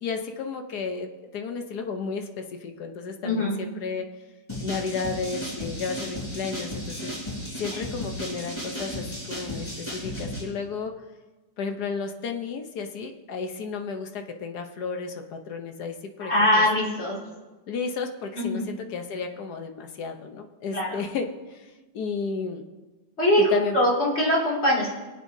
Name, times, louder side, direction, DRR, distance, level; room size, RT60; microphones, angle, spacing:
voice 1, 0.0-4.0 4.6-7.1 7.6-10.9 11.6-16.7 17.7-22.6 23.4-23.8, left 5 dB, 65° left, 5 dB, 1.4 m, -33 dB
voice 2, 3.2-3.5 7.7-7.8 16.2-17.2 18.4-18.7 20.7-21.0 23.2-24.9, left 1 dB, 35° left, -5 dB, 2.8 m, -22 dB
sound 1, 4.5-10.4, equal, 15° left, 4.7 m, -34 dB
24.5 x 8.3 x 2.7 m, 1.2 s
omnidirectional pair, 1.9 m